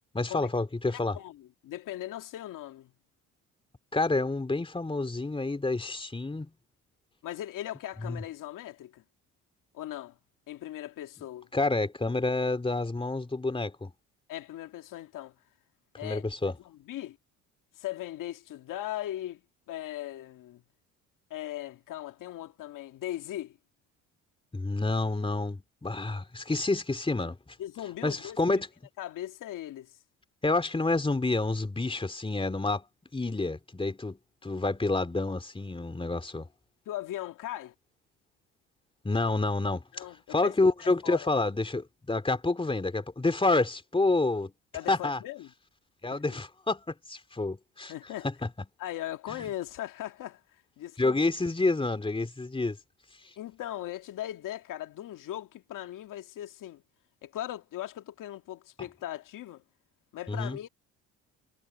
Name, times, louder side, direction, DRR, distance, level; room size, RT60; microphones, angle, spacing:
voice 1, 0.1-1.2 3.9-6.5 8.0-8.2 11.5-13.9 16.0-16.6 24.5-27.5 28.0-28.7 30.4-32.8 33.1-36.5 39.0-44.5 44.9-45.2 46.0-47.9 48.2-48.3 51.0-52.8 58.8-58.9 60.3-60.6, left 3 dB, 15° left, 3.1 m, -28 dB
voice 2, 0.9-2.9 7.2-9.0 9.7-10.2 10.5-11.5 14.3-15.3 16.0-16.2 16.6-17.2 17.8-19.4 19.7-20.6 21.3-23.6 27.6-28.6 29.0-30.0 36.9-37.7 39.9-40.5 41.0-41.3 44.7-45.5 46.1-46.2 47.9-48.3 48.8-51.2 53.4-56.8 57.2-59.6 60.1-60.7, left 13 dB, 65° left, 2.1 m, -39 dB
supercardioid pair, 70°, 34 cm